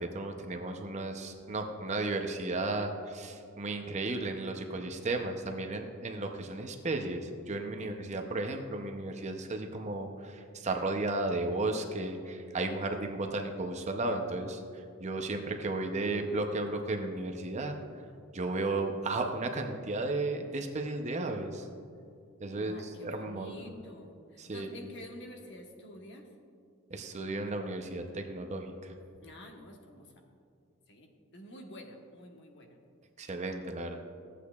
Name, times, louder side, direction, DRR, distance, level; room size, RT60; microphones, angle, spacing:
voice 1, 0.0-17.8 18.3-21.7 22.4-23.7 24.4-24.9 26.9-28.9 33.2-34.0, right 2 dB, 35° right, 4 dB, 0.6 m, -34 dB
voice 2, 22.6-26.3 29.2-30.1 30.9-32.8, left 1 dB, 55° left, 2 dB, 1.1 m, -48 dB
14.5 x 8.3 x 2.3 m, 2.3 s
head